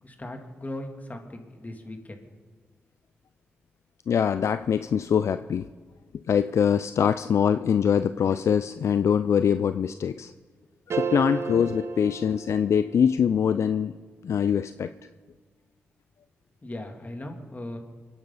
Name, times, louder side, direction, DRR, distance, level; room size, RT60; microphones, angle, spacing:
voice 1, 0.0-2.3 16.6-17.8, left 1 dB, 30° left, 3 dB, 2.9 m, -38 dB
voice 2, 4.1-5.7 6.3-10.3 10.9-14.0 14.2-14.9, left 8 dB, 65° left, 12 dB, 0.4 m, -23 dB
sound 1, 10.9-13.2, right 5 dB, 60° right, 0.9 m, -32 dB
24.0 x 10.5 x 4.1 m, 1.5 s
supercardioid pair, 45°, 5 cm